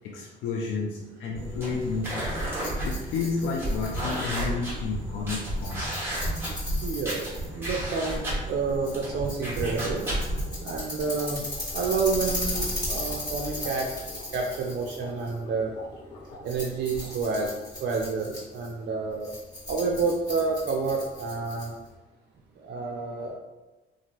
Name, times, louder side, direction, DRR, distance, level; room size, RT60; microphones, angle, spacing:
voice 1, 0.0-2.4 2.8-5.9 13.9-14.0, left 4 dB, 90° left, -1 dB, 0.4 m, -31 dB
sound 1, 1.3-10.5, right 1 dB, 10° right, 1.3 m, -32 dB
Rattle, 2.4-22.0, left 1 dB, 20° left, 1.4 m, -37 dB
voice 2, 6.8-10.0 10.6-11.4 11.7-13.9 14.3-15.7 16.4-17.5 17.8-19.3 19.7-21.7 22.6-23.4, right 4 dB, 60° right, -1 dB, 0.5 m, -29 dB
sound 2, 8.4-17.8, left 1 dB, 65° left, 0.9 m, -46 dB
2.7 x 2.5 x 2.9 m, 1.1 s
cardioid pair, 90°, 20 cm